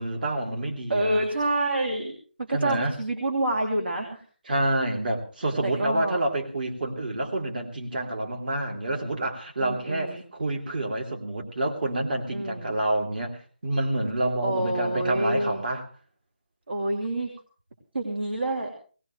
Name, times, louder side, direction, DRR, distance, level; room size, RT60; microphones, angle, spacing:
voice 1, 0.0-1.2 2.5-3.0 4.5-15.8, right 1 dB, 55° right, 3 dB, 3.0 m, -28 dB
voice 2, 0.9-2.1 2.4-4.2 5.6-6.2 9.6-10.2 12.3-12.7 14.4-15.6 16.7-17.3 17.9-18.7, right 1 dB, 70° right, 3 dB, 3.0 m, -27 dB
19.0 x 18.5 x 3.2 m, 0.38 s
figure-of-eight pair, 170°, 6 cm